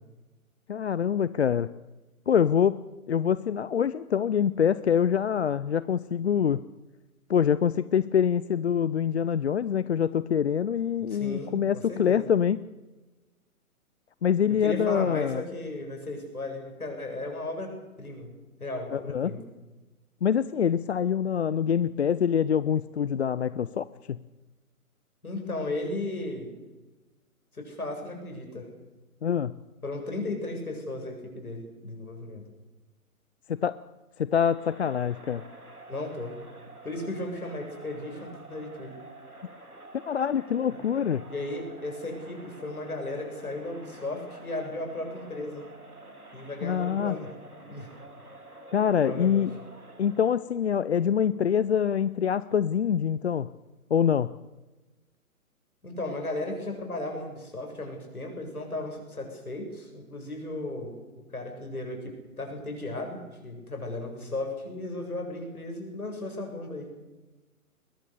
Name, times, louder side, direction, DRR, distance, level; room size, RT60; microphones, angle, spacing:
voice 1, 0.7-1.7 2.3-2.8 3.1-6.6 7.3-12.6 14.2-15.4 18.9-19.3 20.2-24.2 29.2-29.5 33.6-33.8 34.2-35.4 40.1-41.2 46.6-47.2 48.7-49.5 50.0-53.5 53.9-54.3, left 8 dB, 50° left, 17 dB, 0.7 m, -25 dB
voice 2, 11.1-12.3 14.6-18.3 18.6-19.4 25.2-26.5 27.5-28.7 29.8-32.4 35.9-36.4 36.8-39.0 40.7-40.8 41.2-45.7 46.3-47.3 47.7-47.9 49.0-49.5 55.8-61.0 61.3-62.0 62.4-66.9, left 2 dB, 75° left, 3 dB, 7.8 m, -35 dB
Crowd, 34.3-50.5, right 2 dB, 85° right, 4.1 m, -49 dB
22.0 x 21.0 x 6.9 m, 1.1 s
figure-of-eight pair, 130°, 44 cm